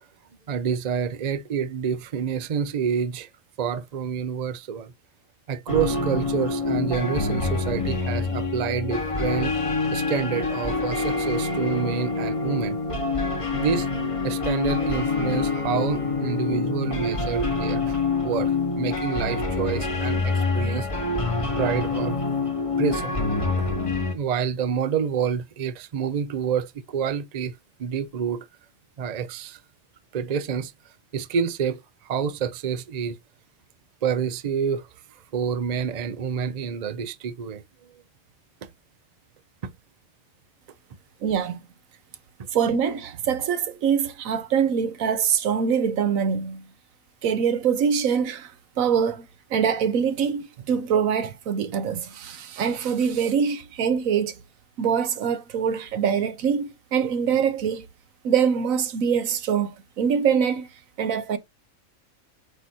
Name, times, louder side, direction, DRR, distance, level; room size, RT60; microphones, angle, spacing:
voice 1, 0.5-3.3 3.6-4.9 5.5-9.5 9.9-12.8 13.5-13.9 14.2-18.0 18.2-18.5 18.8-20.9 21.6-22.2 22.8-23.1 24.1-27.5 27.8-28.4 29.0-29.6 30.1-30.7 31.1-31.8 32.1-33.2 34.0-34.8 35.3-37.6, right 7 dB, 50° right, 0.5 m, -27 dB
sound 1, 5.7-24.2, left 3 dB, 25° left, 1.0 m, -26 dB
voice 2, 41.2-41.6 42.5-46.6 47.2-48.5 48.8-49.2 49.5-54.3 54.8-57.8 58.2-60.7 61.0-61.4, right 7 dB, 80° right, 1.2 m, -24 dB
7.9 x 2.7 x 4.4 m
omnidirectional pair, 1.4 m